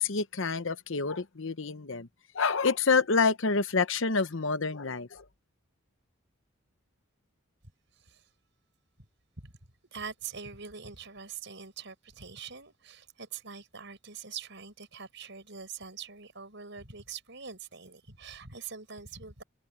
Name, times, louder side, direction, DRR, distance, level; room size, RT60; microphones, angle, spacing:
voice 1, 0.0-2.1 2.3-5.3, left 4 dB, 60° left, 0.9 m, -27 dB
voice 2, 8.0-8.3 9.4-9.5 9.9-19.4, right 6 dB, 55° right, 6.9 m, -44 dB
head